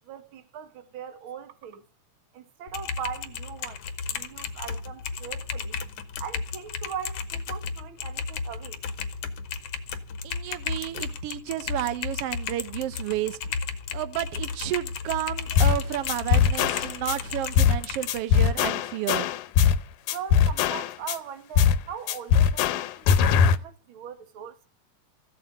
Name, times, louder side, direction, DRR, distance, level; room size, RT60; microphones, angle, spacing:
voice 1, 0.1-1.8 2.3-3.8 4.1-5.8 6.2-8.8 20.1-24.5, right 8 dB, 50° right, 1.7 m, -40 dB
Typing, 2.7-18.2, left 5 dB, 60° left, 1.7 m, -34 dB
voice 2, 10.2-13.4 13.9-19.3, right 13 dB, 80° right, 1.3 m, -31 dB
sound 1, 15.6-15.8 16.1-17.2 17.6-17.8 18.1-19.8 20.1-21.2 21.6-21.8 22.1-23.6, left 7 dB, 80° left, 2.3 m, -21 dB
15.0 x 7.8 x 9.0 m
omnidirectional pair, 3.7 m